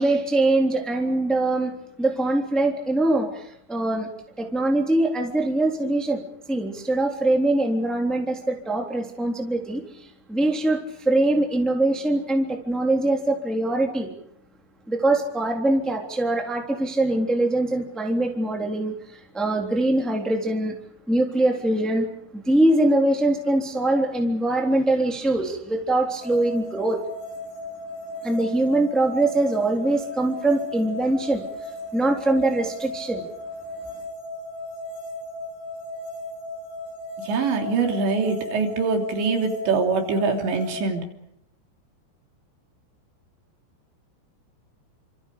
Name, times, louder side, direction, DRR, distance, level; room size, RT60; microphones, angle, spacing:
voice 1, 0.0-4.1 4.4-6.2 6.5-9.8 10.3-14.1 14.9-20.7 21.1-22.1 22.3-27.0 28.2-31.4 31.9-33.3, right 2 dB, ahead, 2 dB, 2.7 m, -23 dB
sound 1, 26.2-40.8, left 1 dB, 85° left, 6.5 m, -36 dB
voice 2, 37.3-41.0, right 4 dB, 85° right, 3 dB, 5.4 m, -23 dB
29.0 x 26.5 x 5.2 m, 0.74 s
omnidirectional pair, 5.0 m